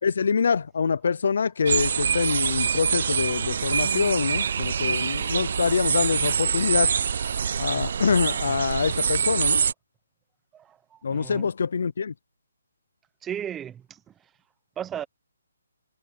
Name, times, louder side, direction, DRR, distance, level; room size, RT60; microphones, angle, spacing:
voice 1, 0.0-6.9 7.6-9.6 11.0-12.1, left 5 dB, 60° left, 0.6 m, -25 dB
sound 1, 1.7-9.7, right 7 dB, 50° right, 0.3 m, -25 dB
voice 2, 10.5-11.5 13.2-14.3 14.8-15.0, right 9 dB, 10° right, 0.9 m, -37 dB
hypercardioid pair, 165°, 0 cm